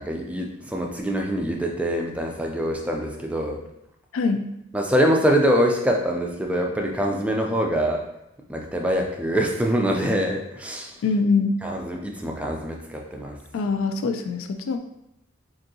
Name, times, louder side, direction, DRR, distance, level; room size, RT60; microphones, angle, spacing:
voice 1, 0.1-3.6 4.7-8.1 8.5-11.0 11.6-13.4, equal, 5° right, 1 dB, 0.3 m, -24 dB
voice 2, 11.0-11.6 13.5-14.8, left 4 dB, 80° left, 7 dB, 0.3 m, -23 dB
3.6 x 2.6 x 2.7 m, 0.85 s
head